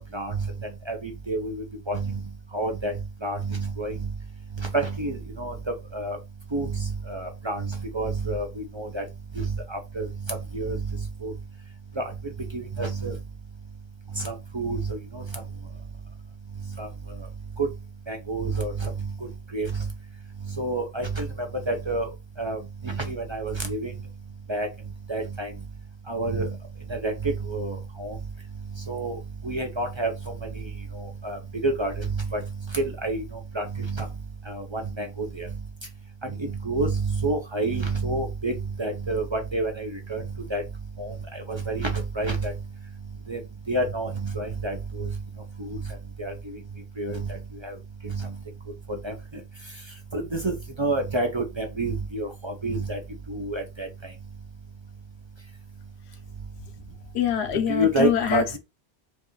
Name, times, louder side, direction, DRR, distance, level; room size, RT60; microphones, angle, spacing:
voice 1, 0.1-0.5 0.9-2.2 2.5-2.9 3.2-4.1 4.6-5.5 5.9-6.2 6.5-9.0 9.4-10.1 10.5-10.8 11.2-11.3 12.0-12.1 12.5-13.2 14.2-15.2 16.8-16.9 17.6-17.7 18.1-18.9 19.5-19.9 20.6-22.1 22.4-23.9 24.5-24.7 25.1-25.5 26.1-26.5 26.9-28.1 28.9-29.2 29.4-30.1 31.0-32.4 32.7-33.2 33.5-34.1 34.5-35.5 36.4-38.5 38.8-40.2 40.5-40.6 41.0-41.1 41.5-42.5 43.3-43.4 43.7-45.1 45.6-45.8 46.2-46.3 47.0-47.3 47.6-47.7 48.0-48.3 49.0-49.1 50.1-53.0 53.3-53.9 57.7-58.4, right 2 dB, 35° right, 0.5 m, -28 dB
voice 2, 57.1-58.6, left 9 dB, 90° left, 1.0 m, -24 dB
4.5 x 2.4 x 3.1 m
omnidirectional pair, 1.1 m